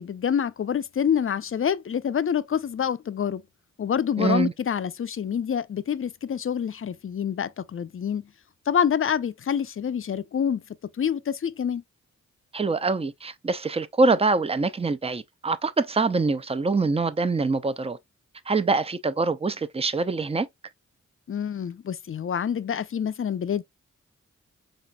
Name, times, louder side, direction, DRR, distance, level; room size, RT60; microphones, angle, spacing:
voice 1, 0.0-3.4 3.8-8.3 8.7-10.6 11.0-11.8 21.3-23.6, left 8 dB, 45° left, 0.5 m, -27 dB
voice 2, 4.2-4.5 12.5-18.0 18.5-20.5, right 3 dB, 20° right, 0.5 m, -24 dB
4.2 x 3.8 x 2.2 m
cardioid pair, 45°, 31 cm